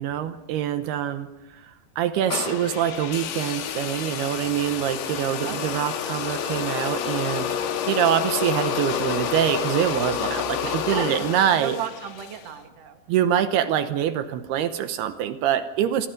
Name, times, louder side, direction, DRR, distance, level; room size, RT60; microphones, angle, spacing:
voice 1, 0.0-7.6 7.9-11.8 13.1-16.1, right 10 dB, 80° right, 9 dB, 2.9 m, -25 dB
sound 1, 2.3-12.5, left 8 dB, 80° left, 3.6 m, -29 dB
voice 2, 5.4-5.8 10.7-13.0, right 8 dB, 45° right, 5 dB, 2.6 m, -34 dB
29.5 x 25.5 x 5.2 m, 0.92 s
omnidirectional pair, 4.7 m